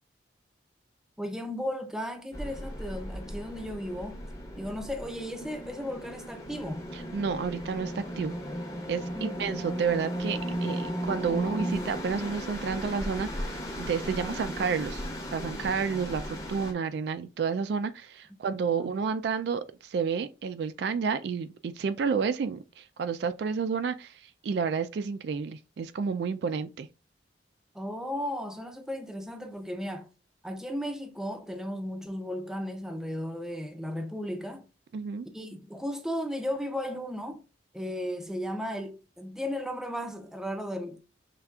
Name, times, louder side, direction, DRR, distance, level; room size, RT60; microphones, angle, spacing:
voice 1, 1.2-4.2 4.6-6.8 9.1-9.6 14.1-14.4 18.7-18.9 27.7-30.1 30.4-34.7 35.3-37.4 37.7-41.0, equal, 5° right, 0.5 m, -35 dB
sound 1, 2.3-16.7, equal, 15° left, 0.8 m, -36 dB
voice 2, 6.9-8.3 8.9-15.1 15.3-24.1 24.4-26.9 34.9-35.3, right 5 dB, 60° right, 0.3 m, -30 dB
5.7 x 3.4 x 2.3 m
head